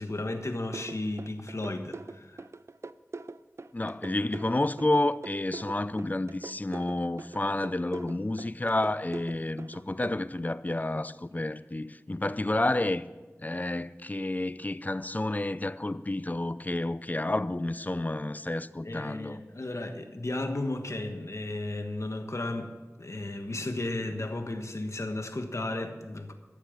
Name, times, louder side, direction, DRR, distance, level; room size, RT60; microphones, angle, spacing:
voice 1, 0.0-2.5 18.8-26.3, left 2 dB, 65° left, 1.3 m, -34 dB
sound 1, 0.7-10.1, right 3 dB, 60° right, 0.4 m, -42 dB
voice 2, 3.7-13.1 13.4-19.4, left 2 dB, 30° left, 0.5 m, -30 dB
13.0 x 7.2 x 7.2 m
wide cardioid pair, 40°, 5 cm